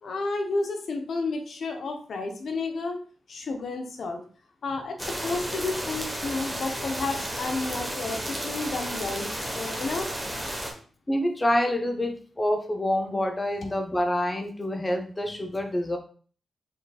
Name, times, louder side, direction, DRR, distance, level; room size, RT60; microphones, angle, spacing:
voice 1, 0.0-3.0 3.3-4.2 4.6-10.1, left 3 dB, 70° left, 4 dB, 0.8 m, -31 dB
sound 1, 5.0-10.7, right 1 dB, 5° right, 1.1 m, -33 dB
voice 2, 11.1-16.0, left 1 dB, 20° left, 4 dB, 0.7 m, -27 dB
5.2 x 3.8 x 2.3 m, 0.42 s
cardioid pair, 70°, 0 cm